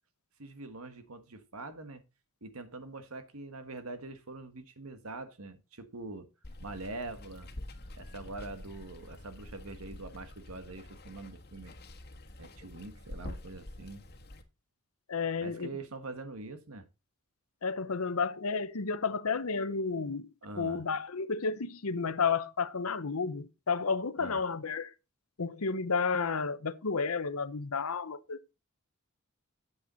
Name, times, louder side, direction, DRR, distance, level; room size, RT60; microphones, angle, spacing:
voice 1, 0.4-2.0 2.4-6.3 6.6-7.5 8.0-11.7 12.4-14.0 15.4-16.9 20.4-20.8 24.2-24.4, right 2 dB, 85° right, 1.4 m, -44 dB
Water, 6.4-14.4, left 1 dB, 50° left, 1.4 m, -47 dB
voice 2, 15.1-15.7 17.6-20.3 20.6-24.9 25.4-28.4, left 5 dB, 90° left, 0.9 m, -31 dB
8.6 x 8.0 x 4.0 m
head